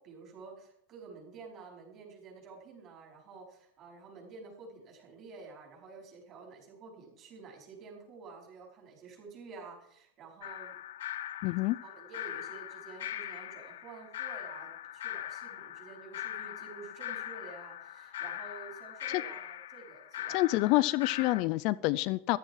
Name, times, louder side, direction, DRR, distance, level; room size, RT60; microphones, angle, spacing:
voice 1, 0.0-10.7 11.7-20.4, right 4 dB, 30° right, 5.1 m, -50 dB
sound 1, 10.4-21.4, left 12 dB, 85° left, 1.2 m, -41 dB
voice 2, 11.4-11.8 19.1-19.2 20.3-22.4, left 19 dB, 40° left, 0.4 m, -27 dB
14.0 x 12.5 x 4.8 m
supercardioid pair, 160°, 0 cm